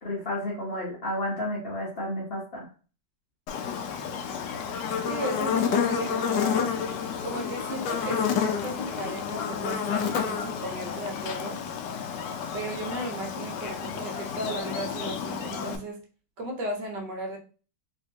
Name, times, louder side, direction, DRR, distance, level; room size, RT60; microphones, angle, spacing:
voice 1, 0.0-2.6, left 1 dB, 40° left, -5 dB, 1.0 m, -31 dB
Buzz, 3.5-15.8, left 7 dB, 75° left, 1.2 m, -30 dB
voice 2, 5.1-6.7 7.2-11.6 12.5-16.0 16.4-17.4, right 1 dB, 70° right, 1 dB, 1.5 m, -35 dB
3.4 x 2.9 x 2.7 m, 0.37 s
omnidirectional pair, 2.0 m